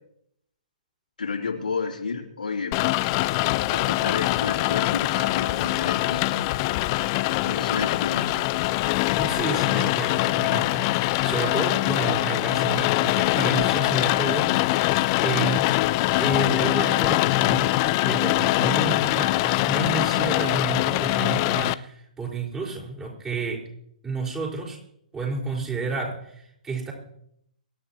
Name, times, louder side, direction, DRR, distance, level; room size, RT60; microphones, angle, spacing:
voice 1, 1.2-2.8 3.7-6.5 7.4-8.5, left 5 dB, 85° left, 0 dB, 3.2 m, -31 dB
Rain, 2.7-21.7, left 19 dB, 35° left, 0.5 m, -23 dB
voice 2, 9.1-14.7 15.2-15.7 16.2-23.6 24.0-24.8 25.1-26.9, right 4 dB, 15° right, -3 dB, 4.9 m, -31 dB
24.5 x 10.5 x 3.0 m, 0.73 s
hypercardioid pair, 135°, 4 cm